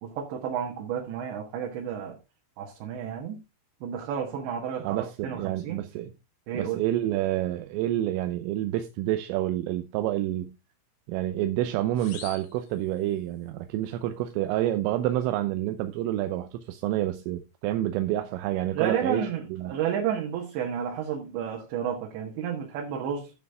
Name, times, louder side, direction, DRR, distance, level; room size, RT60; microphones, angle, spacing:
voice 1, 0.0-2.2 2.6-3.4 3.8-5.8 6.5-6.8 18.7-23.3, right 8 dB, 65° right, 3.7 m, -31 dB
voice 2, 4.8-6.1 6.5-10.6 11.1-19.2 19.5-19.7, right 13 dB, 85° right, 3.4 m, -28 dB
sound 1, 12.0-13.5, left 7 dB, 80° left, 5.0 m, -47 dB
14.0 x 6.4 x 3.6 m
omnidirectional pair, 5.8 m